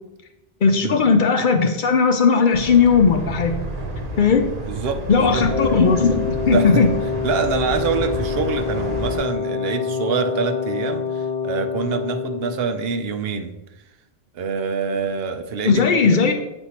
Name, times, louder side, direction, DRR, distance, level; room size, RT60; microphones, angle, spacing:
voice 1, 0.6-3.6 4.2-4.5 5.1-6.9 15.6-16.3, left 5 dB, 55° left, 5 dB, 0.7 m, -17 dB
sound 1, 2.5-9.2, equal, 55° right, 1.2 m, -30 dB
voice 2, 4.7-5.5 6.5-6.8 7.2-13.5 14.3-16.2, right 5 dB, 70° right, 7 dB, 0.8 m, -25 dB
Wind instrument woodwind instrument, 5.5-12.8, left 6 dB, 20° left, 0.4 m, -26 dB
8.0 x 4.4 x 2.9 m, 0.95 s
omnidirectional pair, 1.1 m